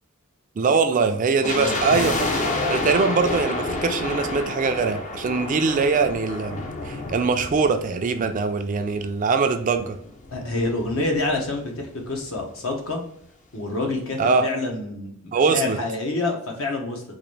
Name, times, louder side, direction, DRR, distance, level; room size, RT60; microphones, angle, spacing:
voice 1, 0.6-2.3 2.7-10.0 14.2-14.5 15.3-15.8, right 4 dB, 40° right, 8 dB, 0.3 m, -22 dB
voice 2, 1.4-1.8 10.3-13.0 13.5-17.0, left 2 dB, 70° left, 1 dB, 1.0 m, -27 dB
sound 1, 1.4-8.7 9.0-9.1 9.7-11.6 11.8-11.9 12.1-12.4 12.9-13.0, left 2 dB, 35° left, 0.5 m, -29 dB
3.9 x 2.6 x 3.2 m, 0.67 s
head